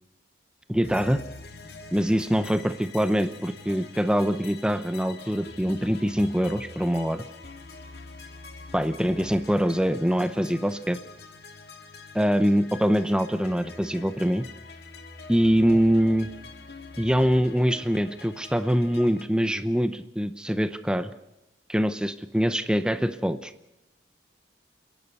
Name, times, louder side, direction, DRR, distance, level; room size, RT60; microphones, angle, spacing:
voice 1, 0.7-1.2 1.9-7.2 8.7-11.0 12.1-14.4 15.3-16.3 17.0-21.1 21.7-23.5, equal, 5° right, 10 dB, 0.7 m, -24 dB
sound 1, 0.8-19.2, left 3 dB, 60° left, 2.0 m, -45 dB
29.0 x 11.0 x 8.2 m, 0.93 s
head